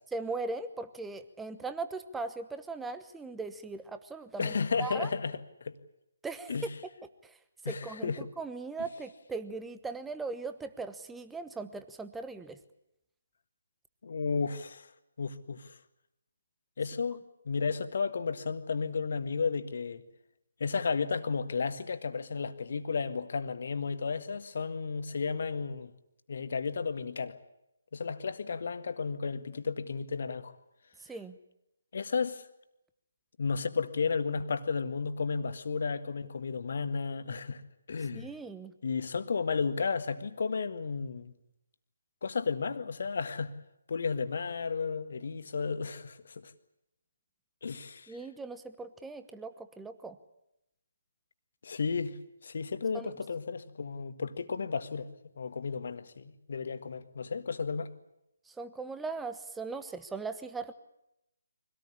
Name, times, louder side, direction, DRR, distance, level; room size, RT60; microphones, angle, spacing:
voice 1, 0.1-5.1 6.2-6.6 7.2-7.4 7.6-12.6 31.0-31.4 38.1-38.7 48.1-50.2 52.9-53.1 58.5-60.7, right 3 dB, 5° right, 1.1 m, -39 dB
voice 2, 4.4-5.8 6.5-6.7 7.6-8.2 14.0-14.9 15.2-15.8 16.8-17.2 17.5-20.0 20.6-25.9 26.3-27.4 27.9-30.5 31.9-32.5 33.4-37.6 37.9-38.3 38.8-41.3 42.2-43.5 43.9-46.5 47.6-48.2 51.6-52.2 52.4-55.1 55.4-57.9, left 5 dB, 55° left, 1.8 m, -33 dB
24.0 x 18.0 x 9.8 m
figure-of-eight pair, 145°, 0 cm